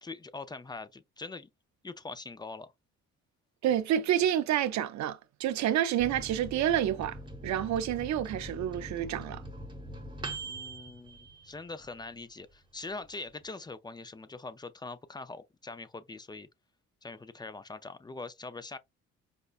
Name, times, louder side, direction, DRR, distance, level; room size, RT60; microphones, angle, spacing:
voice 1, 0.0-1.5 1.8-2.7 10.4-16.5 17.0-18.8, left 3 dB, 15° left, 0.4 m, -43 dB
voice 2, 3.6-7.2 7.4-9.4, right 11 dB, 65° right, 0.5 m, -28 dB
Microwave oven, 6.0-12.1 12.5-12.6 12.8-13.5, right 2 dB, 15° right, 0.9 m, -43 dB
5.1 x 2.2 x 2.4 m
cardioid pair, 90°, 30 cm